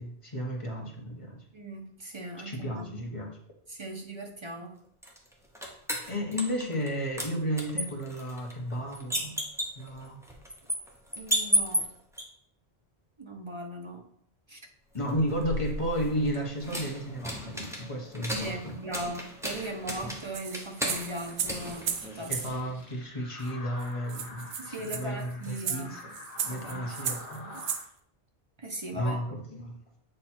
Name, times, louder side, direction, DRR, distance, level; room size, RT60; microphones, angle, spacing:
voice 1, 0.0-1.4 2.4-3.4 6.1-9.4 9.7-10.2 14.9-18.7 22.3-26.1 26.5-27.4 28.9-29.8, equal, 30° left, 0 dB, 1.2 m, -33 dB
voice 2, 1.5-2.9 3.7-4.8 6.0-6.1 11.2-11.9 13.2-14.0 14.5-14.6 18.4-22.4 24.6-25.9 26.5-26.9 27.4-27.6 28.6-29.2, right 1 dB, 30° right, 2 dB, 0.9 m, -39 dB
sound 1, 5.0-6.9 7.2-12.2 15.0-22.5, equal, 5° right, 0.9 m, -34 dB
sound 2, 20.3-22.5 23.5-23.6 23.8-23.9 24.1-27.8, right 7 dB, 90° right, 0.9 m, -35 dB
sound 3, 21.4-27.8, left 2 dB, 65° left, 1.4 m, -47 dB
7.8 x 3.2 x 4.4 m, 0.67 s
omnidirectional pair, 1.1 m